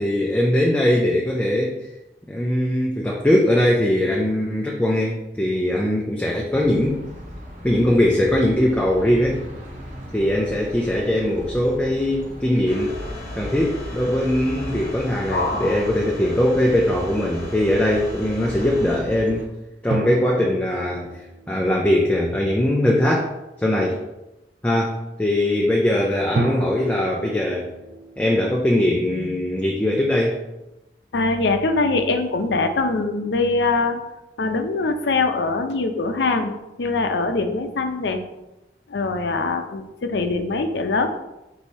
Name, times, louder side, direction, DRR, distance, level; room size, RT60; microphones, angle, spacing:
voice 1, 0.0-1.7 2.3-7.0 7.6-9.4 10.1-13.0 13.3-19.5 19.8-21.1 21.5-23.3 23.6-24.0 24.6-27.7 28.2-30.4, left 1 dB, 10° left, -2 dB, 0.4 m, -21 dB
sound 1, 6.5-19.5, equal, 45° right, 0.8 m, -37 dB
sound 2, 12.7-19.0, left 2 dB, 65° left, 0.9 m, -34 dB
sound 3, 19.9-22.7 26.4-29.7, right 2 dB, 75° right, 0.4 m, -33 dB
voice 2, 31.1-34.0 34.4-36.5 36.8-38.2 38.9-41.1, left 3 dB, 85° left, 7 dB, 0.5 m, -22 dB
4.7 x 2.7 x 4.1 m, 0.95 s
head